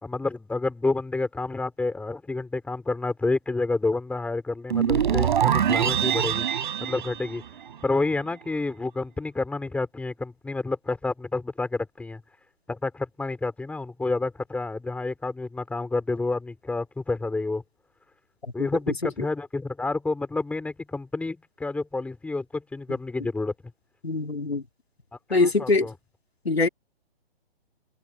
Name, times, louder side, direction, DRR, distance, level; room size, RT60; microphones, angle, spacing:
voice 1, 0.0-6.5 6.8-7.4 7.8-12.2 12.7-17.6 18.5-23.5 25.3-25.9, left 3 dB, 5° left, 5.5 m, -29 dB
sound 1, 4.7-8.0, right 9 dB, 50° right, 6.6 m, -24 dB
voice 2, 24.0-24.6 25.3-25.9 26.5-26.7, left 3 dB, 80° left, 4.3 m, -22 dB
figure-of-eight pair, 130°, 31 cm